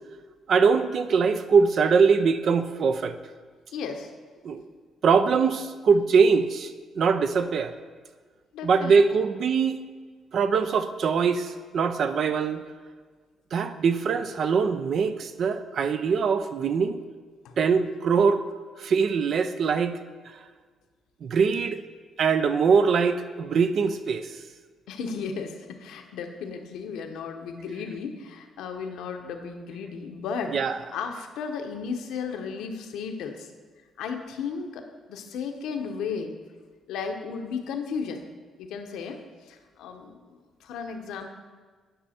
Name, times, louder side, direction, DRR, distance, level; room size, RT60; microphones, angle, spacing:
voice 1, 0.5-3.2 4.4-4.6 5.0-7.7 8.6-9.8 10.3-12.6 13.5-17.0 17.6-18.5 18.8-20.0 21.2-21.8 22.2-24.4 30.5-30.7, right 5 dB, 60° right, 11 dB, 0.5 m, -22 dB
voice 2, 3.7-4.1 8.5-9.0 17.4-17.6 24.9-30.5 30.9-33.5 34.0-36.3 36.9-38.3 38.6-41.3, left 5 dB, 85° left, 5 dB, 0.8 m, -34 dB
10.5 x 5.5 x 4.3 m, 1.5 s
cardioid pair, 90°, 0 cm